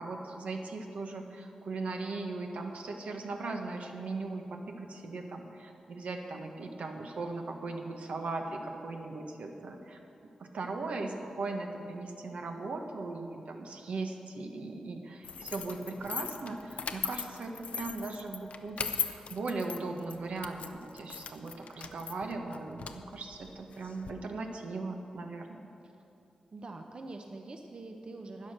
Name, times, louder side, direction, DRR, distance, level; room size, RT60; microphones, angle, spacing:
voice 1, 0.0-10.0 10.4-25.6, right 3 dB, 80° right, 3 dB, 1.2 m, -38 dB
sound 1, 15.2-24.1, left 6 dB, 80° left, 0.6 m, -39 dB
voice 2, 26.5-28.5, right 2 dB, 45° right, 3 dB, 0.8 m, -44 dB
11.5 x 9.7 x 6.5 m, 2.7 s
wide cardioid pair, 105°, 2 cm